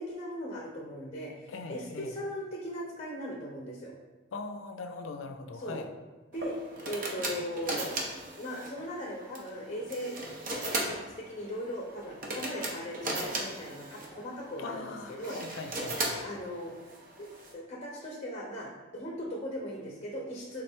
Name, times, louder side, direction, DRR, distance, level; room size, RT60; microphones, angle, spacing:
voice 1, 0.0-3.9 5.6-5.8 6.3-6.6 6.9-8.0 8.4-10.4 10.6-15.4 16.2-16.7 17.2-20.6, equal, 35° left, -2 dB, 0.6 m, -39 dB
voice 2, 1.5-2.1 4.3-5.9 14.6-16.2, left 3 dB, 80° left, 7 dB, 0.4 m, -41 dB
sound 1, 6.3-17.5, right 2 dB, 45° right, 0.7 m, -37 dB
3.7 x 3.2 x 4.4 m, 1.2 s
head